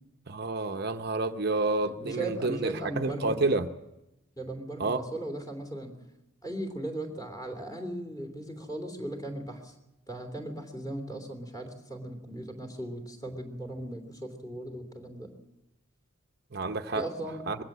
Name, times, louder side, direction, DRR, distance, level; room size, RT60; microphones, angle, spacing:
voice 1, 0.3-3.7 4.8-5.0 16.5-17.0 17.5-17.6, right 3 dB, 50° right, 0.8 m, -29 dB
voice 2, 1.8-3.4 4.4-6.0 6.4-9.7 10.1-15.3 16.9-17.4, right 1 dB, 15° left, 3.0 m, -37 dB
21.5 x 16.0 x 7.4 m
head